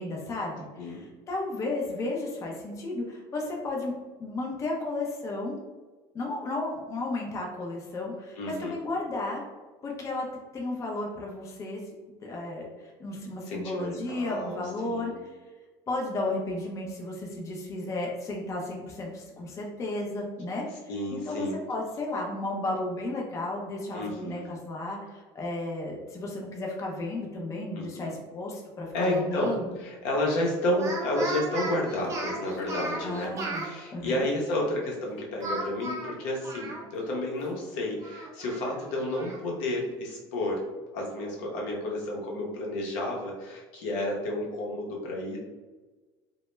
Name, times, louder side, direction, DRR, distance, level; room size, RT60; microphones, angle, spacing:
voice 1, 0.0-3.9 4.2-5.5 6.1-9.4 9.8-10.3 10.5-11.8 12.2-15.1 15.9-20.6 21.1-29.7 33.0-34.3, left 2 dB, 25° left, -1 dB, 0.4 m, -33 dB
voice 2, 8.4-8.8 13.5-15.1 20.9-21.6 23.9-24.4 27.8-28.1 28.9-29.5 29.8-33.3 33.6-40.6 40.9-45.4, left 1 dB, 75° left, -2 dB, 0.7 m, -31 dB
Speech, 29.0-29.6 30.7-33.7 35.4-37.1 37.5-37.6 38.0-39.4, right 2 dB, 25° right, 0.6 m, -36 dB
2.1 x 2.0 x 3.0 m, 1.3 s
supercardioid pair, 120°, 11 cm